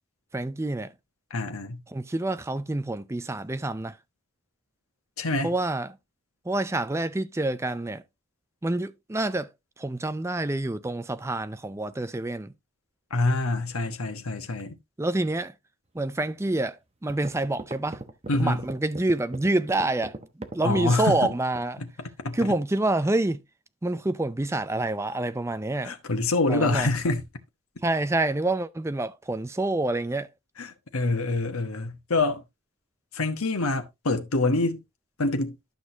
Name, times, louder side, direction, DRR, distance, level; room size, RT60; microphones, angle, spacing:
voice 1, 0.3-0.9 1.9-3.9 5.4-6.0 6.5-8.0 8.6-9.5 9.8-12.5 15.0-15.5 15.9-18.0 18.4-21.8 22.3-23.4 23.8-25.9 26.5-26.9 27.8-30.3, right 2 dB, 15° right, 0.4 m, -27 dB
voice 2, 1.3-1.8 5.2-5.5 13.1-14.8 18.3-18.6 20.6-21.3 21.8-22.5 25.8-27.2 30.6-32.4 33.1-34.8 35.2-35.6, left 2 dB, 90° left, 1.3 m, -26 dB
sound 1, 16.6-16.7 17.1-21.7, right 2 dB, 30° right, 0.9 m, -38 dB
12.0 x 6.2 x 2.7 m
head